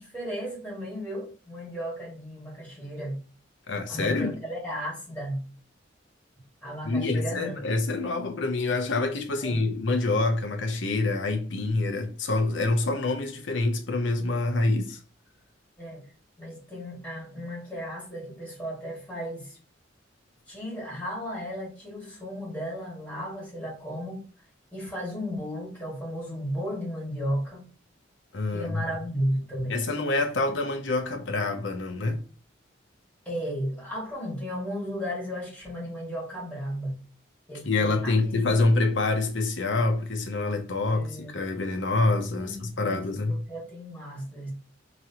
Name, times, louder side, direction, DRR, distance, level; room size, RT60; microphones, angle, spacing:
voice 1, 0.0-3.2 3.9-5.4 6.6-7.6 9.4-9.8 15.8-16.0 16.4-19.6 20.5-24.2 24.7-27.7 28.5-29.8 33.3-37.0 37.5-38.7 40.8-41.3 42.4-44.5, equal, 10° left, 2.1 m, -34 dB
voice 2, 3.7-4.3 6.8-15.0 28.3-28.8 29.7-32.2 37.6-43.4, left 2 dB, 75° left, 0.8 m, -26 dB
5.0 x 3.1 x 2.9 m
head